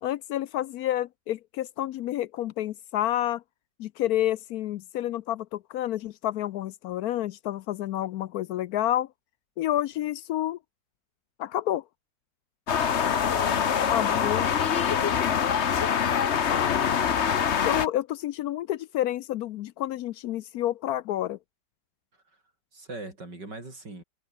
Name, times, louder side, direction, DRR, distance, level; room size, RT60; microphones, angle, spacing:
voice 1, 0.0-3.4 3.8-9.1 9.6-10.6 11.4-11.8 13.9-15.4 16.5-17.0 17.6-21.4, left 13 dB, 70° left, 0.9 m, -29 dB
sound 1, 12.7-17.9, left 7 dB, 45° left, 1.1 m, -24 dB
voice 2, 13.3-14.1 14.4-14.7 22.7-24.0, right 2 dB, 70° right, 7.4 m, -42 dB
omnidirectional pair, 2.0 m